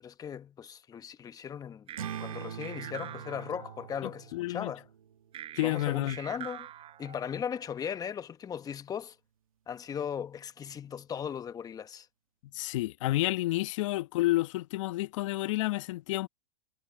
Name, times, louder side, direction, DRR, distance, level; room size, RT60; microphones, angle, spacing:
voice 1, 0.0-1.9 2.2-4.8 5.6-6.7 7.0-9.1 9.7-12.1, left 8 dB, 20° left, 1.1 m, -37 dB
sound 1, 1.9-4.4 5.3-7.9, right 11 dB, 30° right, 6.6 m, -46 dB
sound 2, 2.0-6.8, right 9 dB, 90° right, 2.0 m, -44 dB
voice 2, 4.0-4.7 5.6-6.2 12.5-16.3, left 17 dB, 65° left, 1.2 m, -30 dB
hypercardioid pair, 115°, 18 cm